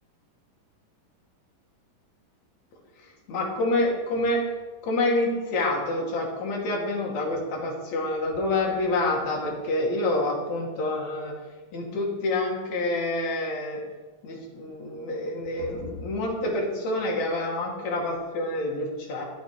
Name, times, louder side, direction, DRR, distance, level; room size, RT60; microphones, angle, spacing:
voice 1, 3.3-4.4 4.8-11.3 11.7-13.8 14.2-19.2, left 2 dB, 60° left, -1 dB, 3.2 m, -27 dB
12.0 x 8.1 x 4.8 m, 1.3 s
omnidirectional pair, 3.9 m